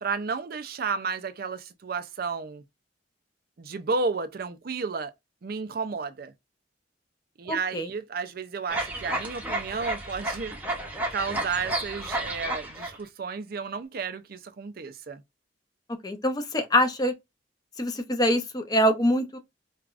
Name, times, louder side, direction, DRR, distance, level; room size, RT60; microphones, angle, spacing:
voice 1, 0.0-2.6 3.6-5.1 5.4-6.3 7.4-10.5 11.1-15.2, right 4 dB, 50° right, 0.5 m, -32 dB
voice 2, 7.5-7.9 16.0-17.1 17.8-19.4, equal, 20° left, 0.6 m, -24 dB
sound 1, 8.7-13.0, right 1 dB, 10° right, 0.8 m, -32 dB
4.7 x 2.4 x 2.4 m
head